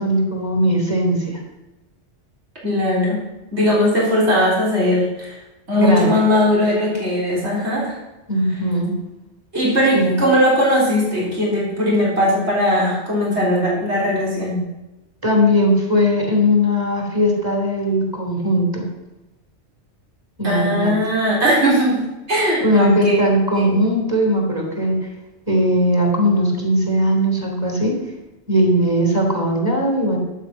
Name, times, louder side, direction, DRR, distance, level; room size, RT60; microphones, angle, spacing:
voice 1, 0.0-1.4 5.8-6.1 8.3-8.9 9.9-10.1 15.2-18.8 20.4-20.9 22.6-24.9 25.5-27.9 28.5-30.2, equal, 20° right, 0 dB, 3.3 m, -18 dB
voice 2, 2.6-3.2 3.5-5.4 5.7-8.0 9.5-14.6 20.4-22.0 22.3-23.2 23.5-23.8, equal, 70° right, -5 dB, 4.3 m, -19 dB
11.5 x 8.8 x 5.9 m, 1.0 s
omnidirectional pair, 1.2 m